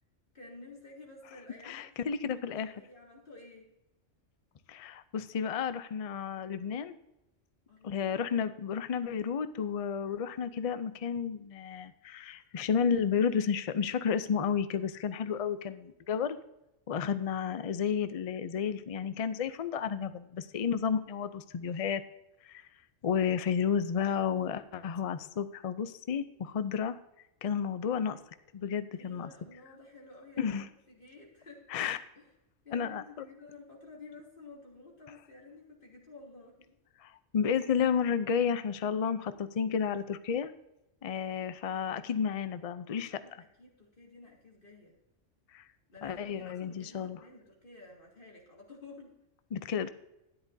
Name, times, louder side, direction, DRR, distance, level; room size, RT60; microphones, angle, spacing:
voice 1, 0.3-2.1 2.5-3.7 7.7-8.0 28.9-30.5 30.9-31.7 32.1-32.3 32.6-36.8 43.1-45.0 45.9-49.2, left 3 dB, 40° left, -3 dB, 3.0 m, -52 dB
voice 2, 1.7-2.7 4.7-7.0 7.8-16.4 16.9-22.0 22.4-22.6 23.0-27.0 27.4-28.2 28.5-29.3 30.4-30.7 31.7-32.0 32.7-33.0 37.0-40.5 41.0-43.2 45.5-45.6 46.0-47.2 49.5-49.9, left 7 dB, 65° left, 12 dB, 0.3 m, -32 dB
13.0 x 10.5 x 2.7 m, 0.91 s
omnidirectional pair, 1.3 m